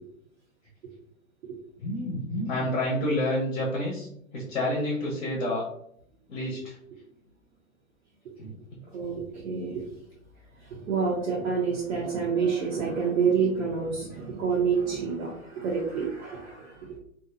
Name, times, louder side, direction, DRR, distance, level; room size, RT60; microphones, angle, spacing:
voice 1, 1.8-4.1 4.3-5.6 6.3-6.7 8.4-8.5, left 1 dB, 50° left, -4 dB, 0.9 m, -29 dB
voice 2, 8.9-9.9 10.6-16.9, right 6 dB, 60° right, -5 dB, 0.8 m, -28 dB
2.7 x 2.2 x 2.5 m, 0.71 s
hypercardioid pair, 130°, 42 cm